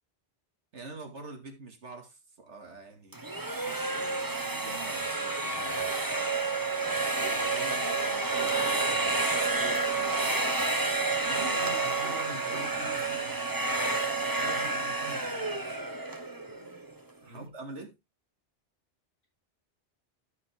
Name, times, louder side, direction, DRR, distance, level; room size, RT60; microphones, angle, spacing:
voice 1, 0.7-5.9 7.2-10.5 11.2-11.8 12.0-13.2 14.3-14.7 15.0-15.2 15.5-15.8 17.2-17.9, right 3 dB, 90° right, 2.4 m, -45 dB
sound 1, 3.1-17.0, right 3 dB, 20° right, 1.2 m, -30 dB
voice 2, 11.5-13.5 14.5-15.8 17.2-17.5, equal, 60° left, 7.7 m, -48 dB
13.5 x 5.3 x 3.4 m
omnidirectional pair, 1.2 m